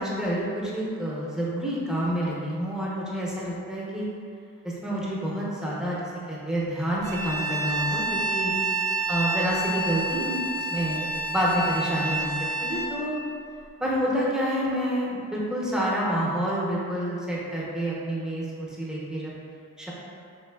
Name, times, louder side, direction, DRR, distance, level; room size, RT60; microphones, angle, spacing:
voice 1, 0.0-4.1 4.8-6.0 6.3-8.5 9.1-10.4 10.7-12.3 12.6-13.2 13.8-19.3 19.8-19.9, equal, ahead, -6 dB, 0.6 m, -28 dB
Bowed string instrument, 7.0-12.9, right 2 dB, 55° right, 0.5 m, -29 dB
3.4 x 3.1 x 2.3 m, 2.3 s
wide cardioid pair, 115°, 29 cm